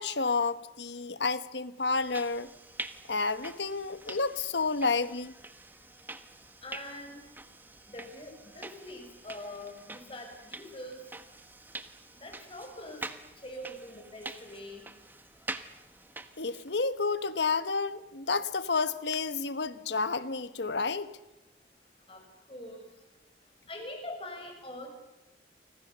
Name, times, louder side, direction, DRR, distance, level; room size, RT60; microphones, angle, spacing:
voice 1, 0.0-2.5 3.1-5.3 16.4-21.1, left 4 dB, 75° left, 1.2 m, -30 dB
sound 1, 1.8-16.8, right 2 dB, 10° right, 1.2 m, -46 dB
voice 2, 6.6-7.2 7.9-11.0 12.2-13.0 13.4-14.8 22.1-22.2 22.5-22.8 23.7-24.9, left 1 dB, 30° left, 5.9 m, -43 dB
30.0 x 25.0 x 6.9 m
head